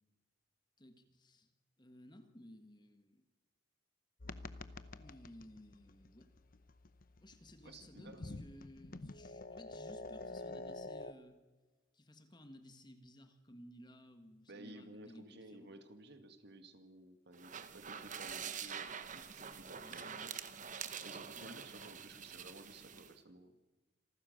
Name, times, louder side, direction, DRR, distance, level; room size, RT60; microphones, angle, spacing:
voice 1, 0.8-1.5 1.8-3.2 4.9-6.3 7.2-11.4 11.9-15.7 19.8-20.3 21.3-21.6, left 1 dB, 25° left, 7 dB, 1.6 m, -57 dB
sound 1, 4.2-11.1, left 2 dB, 50° left, 0.8 m, -49 dB
voice 2, 7.6-8.4 14.5-20.3 21.0-23.6, right 1 dB, 60° right, 8 dB, 1.9 m, -55 dB
sound 2, 17.3-23.1, right 7 dB, 40° right, 1.1 m, -46 dB
27.0 x 14.5 x 6.6 m, 1.2 s
head